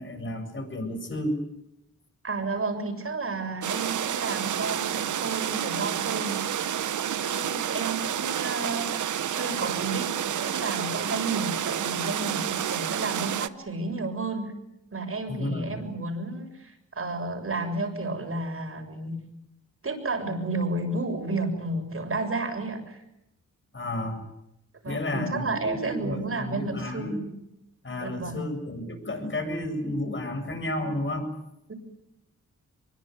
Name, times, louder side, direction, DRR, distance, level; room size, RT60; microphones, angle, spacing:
voice 1, 0.0-1.4 15.3-15.7 23.7-24.3 24.9-27.2 27.8-31.3, left 1 dB, 40° left, 7 dB, 7.7 m, -32 dB
voice 2, 2.2-6.4 7.1-14.5 14.9-19.1 19.8-23.0 24.8-27.3 28.0-28.5 31.7-31.8, right 3 dB, 45° right, 5 dB, 7.4 m, -32 dB
sound 1, 3.6-13.5, right 9 dB, 75° right, 1.1 m, -29 dB
24.0 x 22.5 x 9.6 m, 0.84 s
cardioid pair, 70°, 31 cm